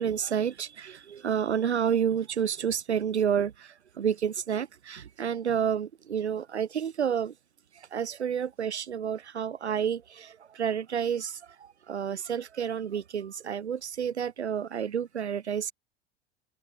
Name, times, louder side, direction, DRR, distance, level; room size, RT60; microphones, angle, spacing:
voice 1, 0.0-7.3 7.7-15.7, right 8 dB, 85° right, 2.1 m, -30 dB
hypercardioid pair, 80°, 33 cm